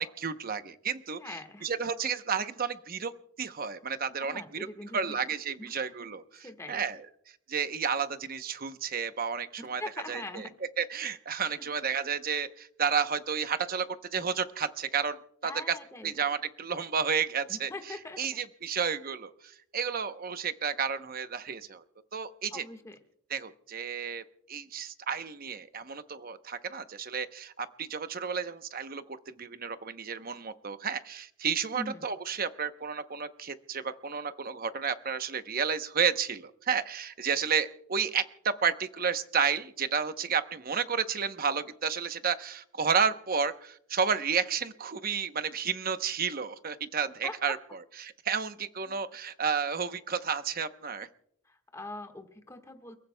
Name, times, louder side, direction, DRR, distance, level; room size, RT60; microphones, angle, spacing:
voice 1, 0.0-3.1 3.4-4.7 4.9-7.1 7.5-9.8 10.1-10.5 10.8-15.7 16.0-21.8 22.1-22.6 23.3-24.2 24.5-47.6 48.0-51.1, right 6 dB, 40° right, 10 dB, 0.8 m, -31 dB
voice 2, 1.2-1.7 4.2-5.2 5.6-5.7 6.4-6.8 9.6-10.5 11.6-11.7 15.4-16.1 17.5-18.2 22.5-23.0 31.7-32.1 47.2-47.6 48.9-49.0 51.4-53.0, left 2 dB, 15° left, 6 dB, 1.5 m, -42 dB
29.5 x 15.0 x 2.2 m, 0.70 s
head